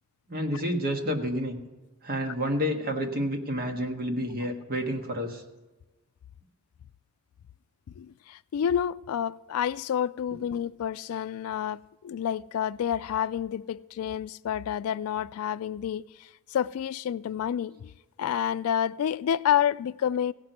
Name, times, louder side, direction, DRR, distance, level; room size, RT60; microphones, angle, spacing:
voice 1, 0.3-1.6 2.0-5.4, equal, 45° right, 1.5 m, -29 dB
voice 2, 8.0-17.9 18.2-20.3, left 9 dB, 80° left, 0.3 m, -29 dB
16.5 x 6.1 x 8.0 m
head